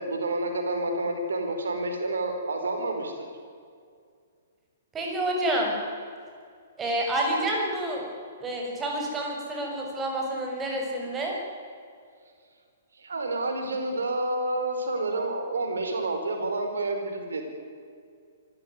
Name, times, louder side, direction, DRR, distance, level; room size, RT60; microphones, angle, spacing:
voice 1, 0.0-3.3 13.0-17.4, right 2 dB, 70° right, 5 dB, 4.8 m, -29 dB
voice 2, 4.9-5.7 6.8-8.0 8.4-11.4, right 1 dB, 15° right, 0 dB, 6.8 m, -28 dB
25.0 x 15.5 x 9.8 m, 2.2 s
figure-of-eight pair, 115°, 0 cm